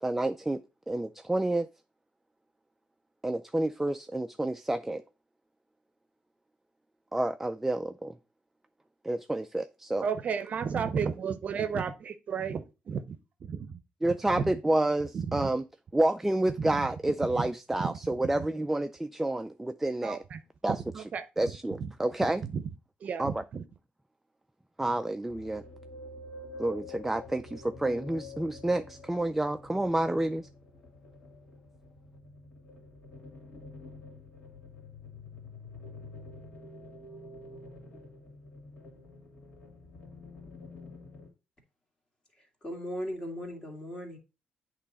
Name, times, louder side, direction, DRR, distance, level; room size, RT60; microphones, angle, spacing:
voice 1, 0.0-0.6 0.9-1.7 3.2-5.0 7.1-8.2 9.0-10.0 14.0-15.6 15.9-20.2 20.6-20.8 21.4-22.4 23.2-23.4 24.8-25.6 26.6-30.5, right 1 dB, 10° right, 0.3 m, -29 dB
voice 2, 10.0-14.5 15.1-15.5 16.6-16.9 17.3-17.4 17.8-18.5 20.0-20.4 20.7-21.3 21.8-21.9 22.2-22.6 23.0-23.6, right 6 dB, 50° right, 0.6 m, -34 dB
sound 1, 25.3-41.3, left 3 dB, 55° left, 2.5 m, -48 dB
voice 3, 42.4-44.2, equal, 25° left, 2.1 m, -38 dB
8.4 x 3.1 x 4.1 m
cardioid pair, 110°, 3 cm